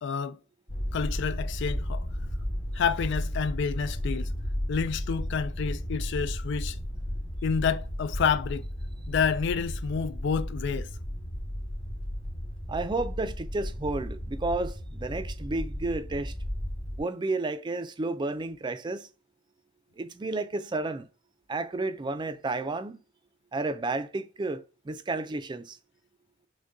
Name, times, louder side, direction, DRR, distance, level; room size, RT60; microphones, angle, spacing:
voice 1, 0.0-0.4 0.9-2.1 2.7-4.3 4.7-6.8 7.4-8.7 9.1-10.9, left 6 dB, 65° left, 0.4 m, -29 dB
sound 1, 0.7-17.0, equal, 30° left, 1.2 m, -34 dB
voice 2, 12.7-16.3 17.0-19.1 20.0-21.1 21.5-23.0 23.5-25.8, right 2 dB, 25° right, 0.4 m, -31 dB
6.2 x 2.2 x 2.5 m
head